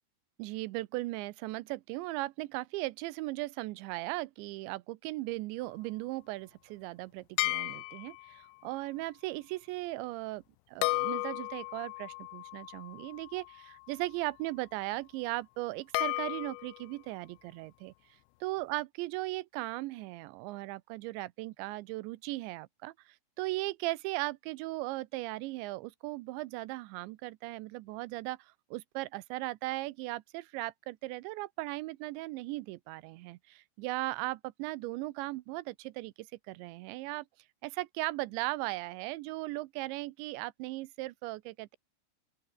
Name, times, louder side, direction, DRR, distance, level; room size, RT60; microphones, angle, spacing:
voice 1, 0.4-10.4 10.7-17.9 18.4-37.3 37.6-41.8, right 20 dB, 85° right, 3.1 m, -37 dB
sound 1, 7.4-8.4 10.8-13.9 15.9-16.9, left 25 dB, 85° left, 2.8 m, -35 dB
open air
omnidirectional pair, 5.1 m